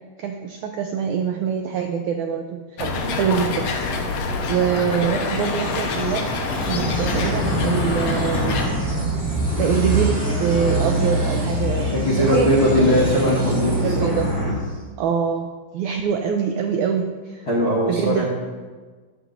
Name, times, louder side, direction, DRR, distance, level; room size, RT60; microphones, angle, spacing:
voice 1, 0.2-3.7 4.5-6.3 6.7-8.6 9.6-12.5 12.8-12.9 13.6-14.3 15.0-17.5 17.9-18.3, right 7 dB, 85° right, 4 dB, 1.7 m, -24 dB
sound 1, 2.8-8.7, left 4 dB, 65° left, 1.9 m, -26 dB
sound 2, 5.1-14.8, right 1 dB, 5° left, 0.7 m, -31 dB
sound 3, 6.7-14.5, right 1 dB, 15° right, 3.5 m, -24 dB
voice 2, 11.9-14.1 17.5-18.3, equal, 45° left, -4 dB, 1.3 m, -20 dB
14.0 x 11.0 x 2.6 m, 1.4 s
omnidirectional pair, 4.1 m